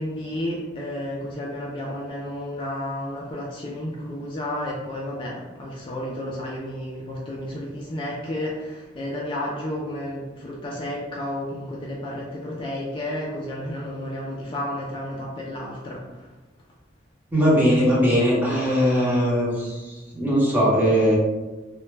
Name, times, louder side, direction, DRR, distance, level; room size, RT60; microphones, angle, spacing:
voice 1, 0.0-16.3, left 1 dB, 30° left, -3 dB, 0.3 m, -32 dB
voice 2, 17.3-21.1, equal, 10° right, -6 dB, 0.7 m, -20 dB
2.1 x 2.1 x 3.1 m, 1.1 s
head